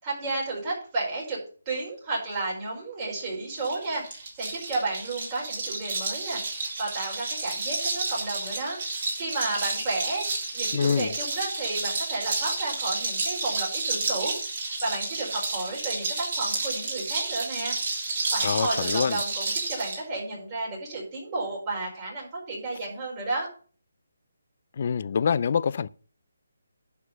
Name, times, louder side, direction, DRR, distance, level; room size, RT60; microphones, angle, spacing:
voice 1, 0.0-1.4 1.6-10.3 10.5-17.9 18.3-23.5, right 2 dB, 20° right, 5.0 m, -32 dB
sound 1, 3.6-20.0, right 3 dB, 35° right, 3.8 m, -31 dB
voice 2, 10.7-11.1 18.4-19.2 24.8-25.9, left 6 dB, 40° left, 0.4 m, -25 dB
11.0 x 4.7 x 7.2 m
hypercardioid pair, 165°, 0 cm